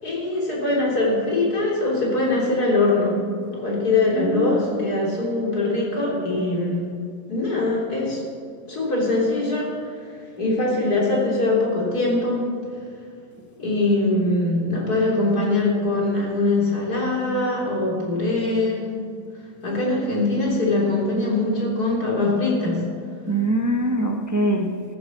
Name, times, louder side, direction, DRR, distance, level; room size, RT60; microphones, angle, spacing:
voice 1, 0.0-3.2 3.5-6.8 7.3-8.2 8.7-12.4 13.6-18.9 19.6-22.8, left 2 dB, 85° left, -3 dB, 4.0 m, -22 dB
voice 2, 4.1-4.9 23.3-24.8, right 1 dB, 15° right, 3 dB, 0.7 m, -23 dB
14.0 x 9.5 x 7.3 m, 2.2 s
omnidirectional pair, 1.6 m